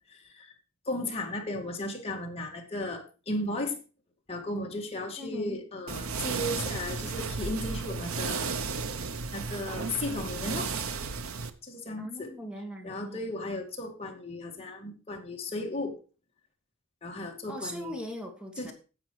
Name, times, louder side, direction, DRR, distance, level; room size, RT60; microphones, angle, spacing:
voice 1, 0.1-0.5 0.9-3.8 4.3-8.5 9.3-10.7 11.6-12.3 12.8-16.0 17.0-18.0 18.6-18.7, left 2 dB, 30° left, 1 dB, 2.2 m, -35 dB
voice 2, 5.2-5.6 12.0-13.2 17.5-18.7, equal, 5° right, 3 dB, 1.7 m, -40 dB
sound 1, 5.9-11.5, right 4 dB, 80° right, 0.9 m, -34 dB
11.0 x 7.5 x 4.8 m, 0.35 s
head